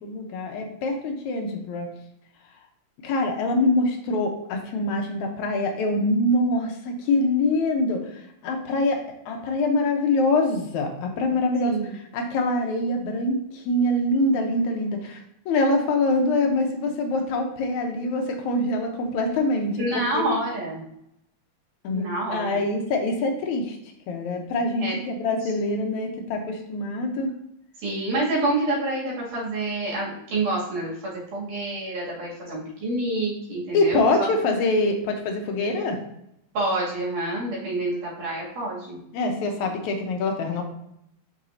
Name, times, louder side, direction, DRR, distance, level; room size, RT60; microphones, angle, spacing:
voice 1, 0.0-1.9 3.0-15.2 15.5-20.2 21.8-22.0 22.3-23.8 24.1-27.3 33.7-36.0 39.1-40.6, left 2 dB, 75° left, 3 dB, 2.1 m, -24 dB
voice 2, 19.8-20.8 21.9-22.6 24.8-25.0 27.8-34.1 36.5-39.0, right 2 dB, 80° right, -5 dB, 3.9 m, -27 dB
7.2 x 6.3 x 2.7 m, 0.76 s
omnidirectional pair, 3.5 m